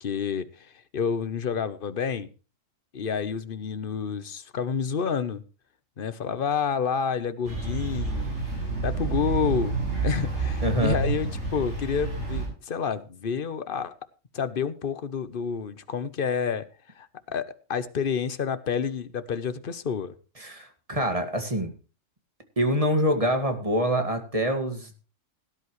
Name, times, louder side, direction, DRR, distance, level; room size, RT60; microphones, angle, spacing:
voice 1, 0.0-2.3 2.9-5.4 6.0-8.3 8.8-9.7 10.0-14.0 14.3-16.7 16.9-20.2, left 6 dB, 50° left, 1.0 m, -29 dB
sound 1, 7.4-12.5, right 4 dB, 75° right, 6.5 m, -29 dB
voice 2, 10.6-11.0 20.4-21.7 22.6-24.9, equal, 25° right, 2.0 m, -25 dB
17.5 x 11.0 x 3.1 m
omnidirectional pair, 1.3 m